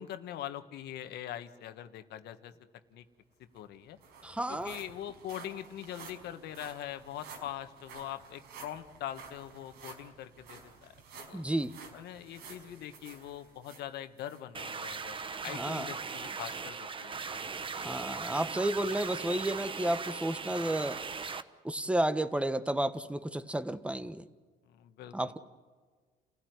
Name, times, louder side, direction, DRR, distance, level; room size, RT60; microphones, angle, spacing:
voice 1, 0.0-2.5 2.9-3.0 3.4-4.0 4.5-11.5 11.9-15.2 15.4-17.4 24.6-25.4, left 11 dB, 75° left, 9 dB, 1.6 m, -43 dB
sound 1, 3.2-3.3 3.6-14.4 14.9-15.1 15.6-15.7, right 5 dB, 85° right, 5.3 m, -52 dB
voice 2, 4.2-4.7 11.3-11.8 15.5-15.9 17.8-21.0 21.6-24.2 25.1-25.4, right 1 dB, 5° right, 12 dB, 1.2 m, -32 dB
sound 2, 14.5-21.4, right 5 dB, 30° right, 1.1 m, -39 dB
29.5 x 16.5 x 9.5 m, 1.5 s
cardioid pair, 110°, 17 cm